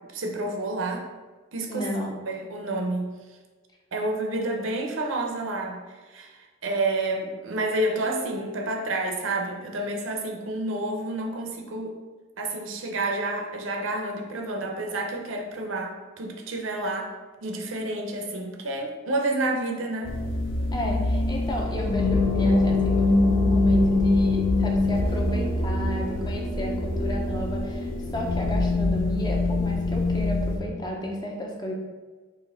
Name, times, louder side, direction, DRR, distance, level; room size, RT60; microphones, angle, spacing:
voice 1, 0.1-1.1 1.5-1.9 2.3-3.2 3.9-5.8 6.1-12.0 12.4-17.1 17.4-20.1, right 2 dB, 70° right, 1 dB, 0.6 m, -29 dB
voice 2, 1.7-2.2 20.7-31.7, equal, 20° left, -1 dB, 0.6 m, -32 dB
sound 1, 20.0-30.6, left 2 dB, 65° left, 0.5 m, -24 dB
4.3 x 2.9 x 3.5 m, 1.3 s
head